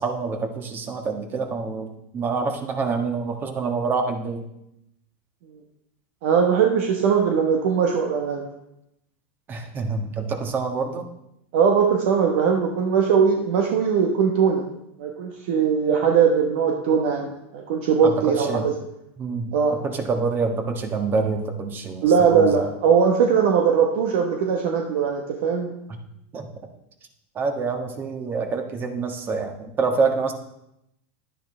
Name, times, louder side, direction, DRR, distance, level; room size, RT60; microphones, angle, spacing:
voice 1, 0.0-4.4 9.5-11.1 18.0-18.7 19.2-19.6 19.8-22.6 26.3-26.5 27.3-30.3, right 4 dB, 30° right, 5 dB, 1.5 m, -26 dB
voice 2, 6.2-8.5 11.5-14.7 15.0-18.7 19.5-19.8 22.0-25.7, right 6 dB, 65° right, 2 dB, 1.1 m, -20 dB
10.5 x 10.0 x 3.3 m, 0.82 s
hypercardioid pair, 110°, 7 cm